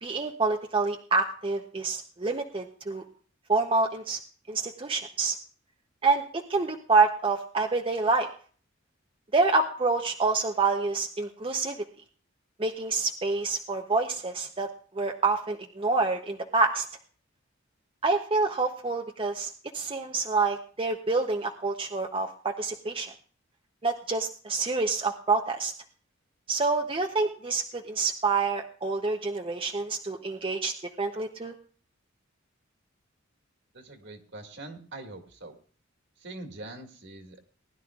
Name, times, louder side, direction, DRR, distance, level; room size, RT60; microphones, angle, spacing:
voice 1, 0.0-3.0 3.5-4.2 4.5-5.3 6.0-8.3 9.3-11.8 12.6-14.7 14.9-16.9 18.0-23.1 23.8-25.7 26.5-31.5, right 3 dB, 25° right, 3 dB, 0.7 m, -27 dB
voice 2, 33.7-35.6 36.2-37.5, right 2 dB, 60° right, 3 dB, 2.0 m, -43 dB
20.0 x 11.0 x 2.4 m, 0.44 s
head